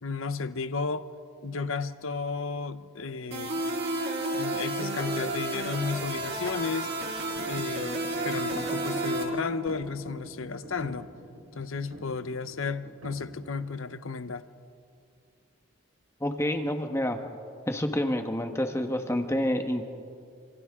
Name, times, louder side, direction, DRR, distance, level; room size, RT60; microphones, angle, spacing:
voice 1, 0.0-1.1 1.4-3.6 4.3-6.9 7.4-11.1 11.5-14.4, left 4 dB, 75° left, 13 dB, 0.8 m, -33 dB
sound 1, 3.3-9.2, right 2 dB, 50° right, 5.3 m, -31 dB
sound 2, 5.1-13.7, equal, 85° right, 3.1 m, -48 dB
voice 2, 16.2-17.2 17.7-19.8, left 1 dB, 15° left, 5 dB, 1.3 m, -28 dB
28.5 x 27.0 x 3.7 m, 2.5 s
head